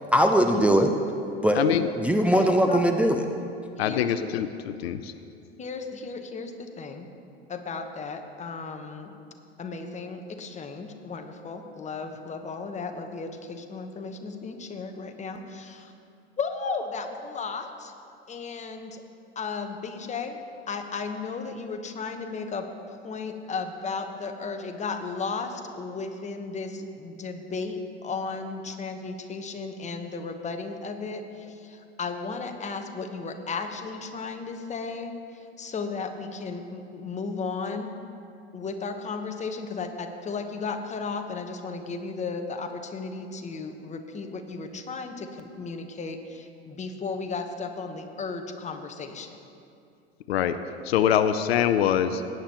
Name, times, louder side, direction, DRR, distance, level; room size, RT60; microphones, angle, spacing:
voice 1, 0.1-0.9 1.4-1.6 2.0-3.2, equal, 5° right, 4 dB, 0.5 m, -20 dB
voice 2, 1.6-1.9 3.8-4.5 4.8-5.1 50.3-50.6 50.9-52.2, left 10 dB, 70° left, 11 dB, 0.6 m, -23 dB
voice 3, 3.8-4.1 5.6-7.1 7.5-9.2 9.6-15.9 16.4-17.9 18.3-19.0 19.3-20.4 20.7-37.9 38.5-49.3, left 4 dB, 20° left, 6 dB, 1.1 m, -35 dB
18.0 x 9.1 x 3.0 m, 2.6 s
figure-of-eight pair, 80°, 32 cm